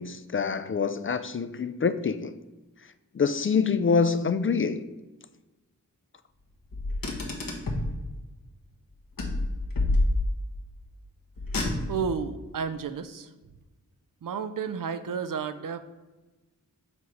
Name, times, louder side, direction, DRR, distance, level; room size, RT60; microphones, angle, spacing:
voice 1, 0.0-2.3 3.1-4.9, left 5 dB, 40° left, 0.4 m, -26 dB
Car, 6.7-7.9 9.2-10.5 11.4-12.2, left 2 dB, 75° left, 1.3 m, -27 dB
voice 2, 11.9-13.3 14.2-15.8, right 6 dB, 65° right, 0.6 m, -32 dB
7.0 x 3.2 x 5.2 m
cardioid pair, 60°, 34 cm